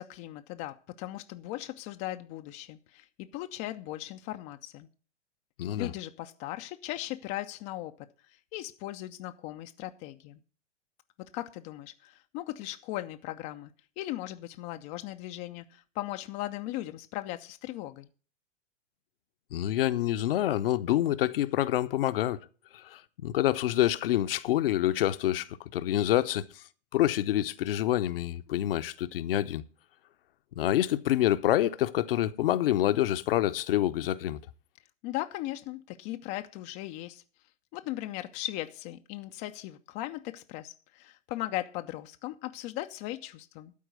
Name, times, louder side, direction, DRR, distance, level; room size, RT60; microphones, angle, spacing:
voice 1, 0.0-4.9 5.8-8.0 8.3-10.4 11.3-18.1 35.0-37.2 37.7-43.7, left 15 dB, 20° left, 0.4 m, -38 dB
voice 2, 5.6-5.9 19.5-22.4 22.7-26.5 26.9-29.6 30.6-34.4, left 13 dB, 50° left, 0.7 m, -27 dB
12.0 x 4.6 x 7.8 m
figure-of-eight pair, 105°, 36 cm